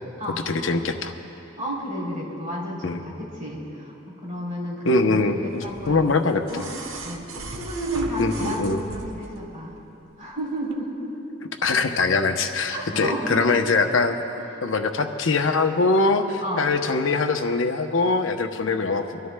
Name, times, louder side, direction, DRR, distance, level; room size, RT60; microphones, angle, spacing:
voice 1, 0.5-1.1 2.8-3.0 4.8-6.6 8.2-8.8 11.6-14.2 14.6-19.3, left 3 dB, 70° left, 6 dB, 0.7 m, -23 dB
voice 2, 1.6-6.7 7.0-9.8 10.2-11.1 12.7-13.4 16.4-16.7, equal, 40° right, -5 dB, 3.2 m, -32 dB
sound 1, 5.6-9.4 10.6-10.7, right 3 dB, 90° right, 1.0 m, -35 dB
25.5 x 13.0 x 2.2 m, 2.9 s
head